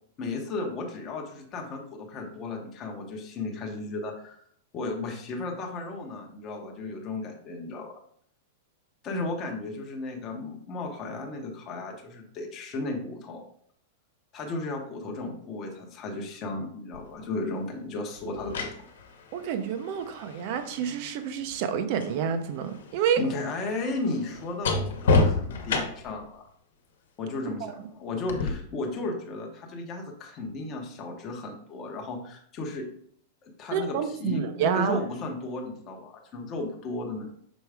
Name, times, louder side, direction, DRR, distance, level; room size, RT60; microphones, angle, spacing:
voice 1, 0.2-4.4 4.7-7.9 9.0-13.4 14.3-18.9 23.2-26.4 27.2-32.9 33.4-37.3, left 2 dB, 20° left, 1 dB, 0.9 m, -34 dB
sound 1, 16.9-17.1 18.2-22.2 22.5-26.2 28.3-28.5, left 3 dB, 75° left, 1.2 m, -29 dB
voice 2, 19.3-23.2 27.6-27.9 33.7-35.0, right 8 dB, 35° right, 8 dB, 0.7 m, -28 dB
6.2 x 4.5 x 3.4 m, 0.64 s
supercardioid pair, 175°, 0 cm